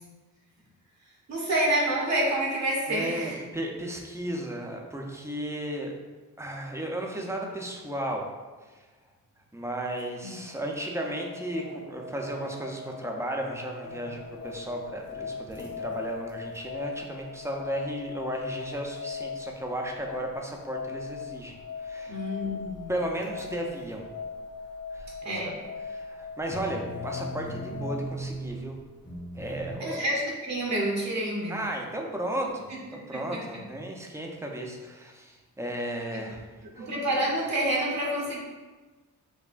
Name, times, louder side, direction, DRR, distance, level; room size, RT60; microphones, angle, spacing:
voice 1, 1.3-3.4 10.2-10.4 22.1-22.9 25.2-25.6 29.8-31.6 33.1-33.6 36.1-36.2 36.7-38.4, right 1 dB, 55° right, -3 dB, 0.8 m, -28 dB
voice 2, 2.9-5.9 6.4-8.3 8.7-8.8 9.5-21.6 21.8-22.2 22.9-24.0 24.9-25.5 25.9-28.8 29.3-30.0 31.5-36.4 36.8-36.9, right 1 dB, 10° right, 0 dB, 0.5 m, -34 dB
sound 1, 10.1-28.1, left 5 dB, 70° left, 1.4 m, -40 dB
sound 2, 13.8-16.8 17.1-17.4 17.7-17.8 18.1-18.2 18.5-19.5 19.9-20.4 20.6-25.2 25.6-29.7, right 1 dB, 30° left, 1.0 m, -41 dB
5.4 x 2.1 x 2.5 m, 1.3 s
cardioid pair, 75°, 34 cm